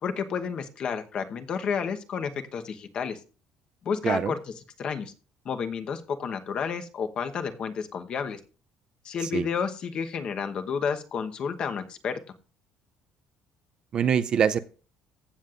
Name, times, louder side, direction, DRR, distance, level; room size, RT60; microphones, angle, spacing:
voice 1, 0.0-3.2 3.8-5.1 5.4-8.4 9.0-12.2, left 6 dB, 35° left, 7 dB, 1.0 m, -31 dB
voice 2, 13.9-14.6, right 8 dB, 35° right, 13 dB, 0.4 m, -24 dB
15.5 x 7.2 x 2.5 m, 0.35 s
cardioid pair, 170°, 3 cm